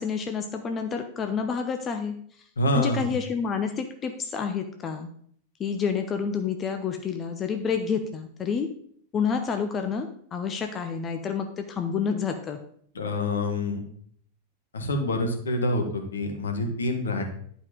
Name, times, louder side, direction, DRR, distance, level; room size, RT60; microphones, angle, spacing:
voice 1, 0.0-2.5 2.7-5.1 5.6-8.7 9.1-12.6, left 6 dB, 25° left, 6 dB, 0.8 m, -29 dB
voice 2, 2.6-3.1 12.9-13.8 14.7-17.2, left 1 dB, 70° left, 3 dB, 1.8 m, -26 dB
11.0 x 5.1 x 5.2 m, 0.63 s
figure-of-eight pair, 90°, 0 cm